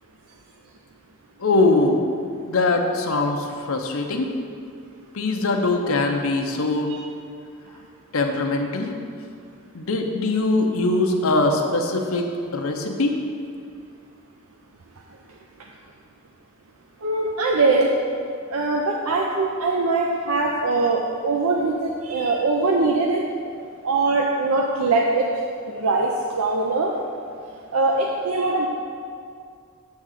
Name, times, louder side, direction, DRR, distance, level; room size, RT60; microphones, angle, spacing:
voice 1, 1.4-2.0 2.5-4.3 5.1-6.9 8.1-9.0 9.7-13.1, left 2 dB, 70° left, 3 dB, 0.8 m, -22 dB
voice 2, 17.0-17.9 18.5-23.2 23.8-25.3 25.7-26.9 27.7-28.7, right 3 dB, 80° right, 0 dB, 0.6 m, -22 dB
8.4 x 3.7 x 6.6 m, 2.4 s
head